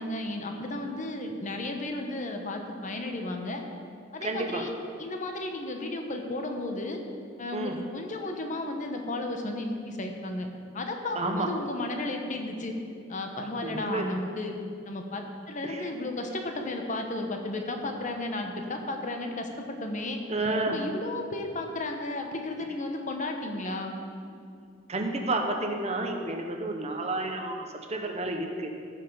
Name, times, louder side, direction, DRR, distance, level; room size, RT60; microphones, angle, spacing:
voice 1, 0.0-3.6 4.1-4.7 5.0-7.0 7.4-10.5 10.7-12.7 13.1-14.5 14.9-20.2 20.7-24.0, left 2 dB, 40° left, 4 dB, 1.0 m, -33 dB
voice 2, 4.2-4.7 7.5-7.7 11.2-11.5 13.6-14.1 15.6-15.9 20.3-20.8 24.9-28.7, right 2 dB, 35° right, 3 dB, 0.9 m, -30 dB
14.5 x 5.7 x 5.5 m, 2.4 s
head